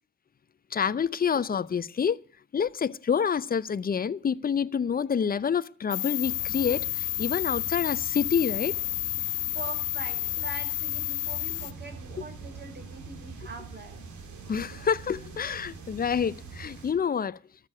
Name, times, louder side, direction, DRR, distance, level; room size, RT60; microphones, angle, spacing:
voice 1, 0.7-2.2 2.5-8.7 14.5-17.4, left 7 dB, 30° left, 0.6 m, -27 dB
sound 1, 5.9-11.7, left 16 dB, 85° left, 0.6 m, -31 dB
sound 2, 6.2-16.9, right 4 dB, 70° right, 3.1 m, -44 dB
voice 2, 9.5-14.4, right 2 dB, 35° right, 4.7 m, -43 dB
13.0 x 6.8 x 9.5 m
cardioid pair, 90°, 30 cm